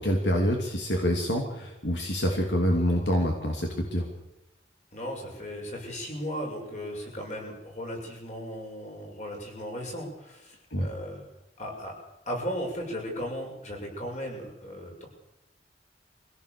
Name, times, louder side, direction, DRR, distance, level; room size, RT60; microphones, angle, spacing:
voice 1, 0.0-4.1 10.7-10.9, equal, 75° left, 2 dB, 2.8 m, -26 dB
voice 2, 4.9-11.2 11.6-11.9 12.2-15.1, equal, 40° left, 0 dB, 6.8 m, -36 dB
24.0 x 17.0 x 6.9 m, 0.91 s
head